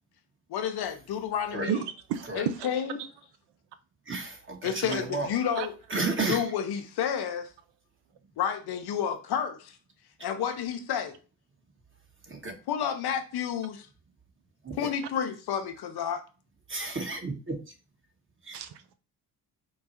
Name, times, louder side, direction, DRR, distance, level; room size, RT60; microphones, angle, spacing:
voice 1, 0.5-1.8 2.3-3.0 4.6-5.7 6.3-7.5 8.4-9.8 10.2-11.2 12.7-13.9 14.8-16.2, left 8 dB, 60° left, 0.8 m, -30 dB
voice 2, 1.7-2.7 5.6-5.7 18.5-18.9, right 9 dB, 65° right, 0.6 m, -32 dB
voice 3, 4.1-5.4 5.9-6.5 12.3-12.6 14.6-14.9 16.7-17.7 18.4-18.6, right 3 dB, 25° right, 1.3 m, -32 dB
4.6 x 2.3 x 4.3 m
hypercardioid pair, 55°, 44 cm